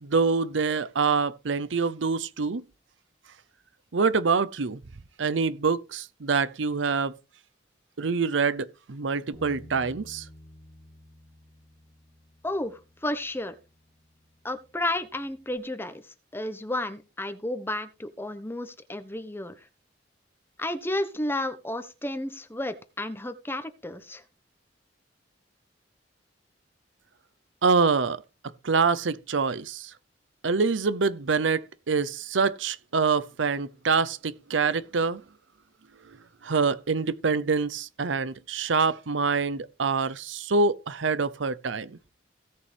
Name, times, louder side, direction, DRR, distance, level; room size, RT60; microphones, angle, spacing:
voice 1, 0.0-2.6 3.9-4.8 5.2-7.1 8.0-10.3 27.6-28.2 28.6-29.9 30.4-35.2 36.4-42.0, right 4 dB, 85° right, 0.7 m, -25 dB
Bass guitar, 9.3-15.6, left 1 dB, 10° right, 3.4 m, -52 dB
voice 2, 12.4-13.5 14.4-16.0 16.3-19.6 20.6-24.2, left 1 dB, 10° left, 1.0 m, -32 dB
16.5 x 6.8 x 3.4 m
head